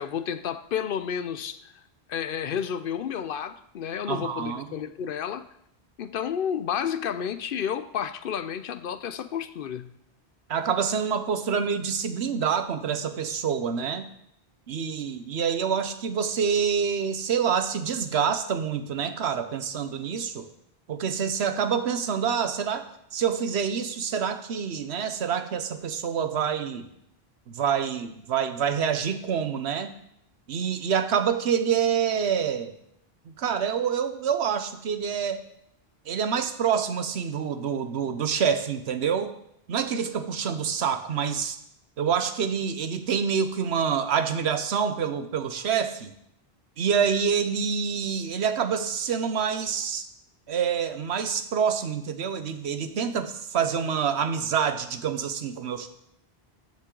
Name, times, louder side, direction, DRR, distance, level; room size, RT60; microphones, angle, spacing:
voice 1, 0.0-1.7 2.1-5.5 6.0-9.9, left 8 dB, 65° left, 0.7 m, -31 dB
voice 2, 4.1-4.7 10.5-14.0 14.7-20.5 20.9-26.9 27.5-30.0 30.5-32.7 33.2-35.4 36.1-39.4 39.7-41.6 42.0-46.1 46.8-50.0 50.5-55.9, right 7 dB, 85° right, 1.1 m, -27 dB
13.0 x 7.4 x 3.8 m
omnidirectional pair, 1.1 m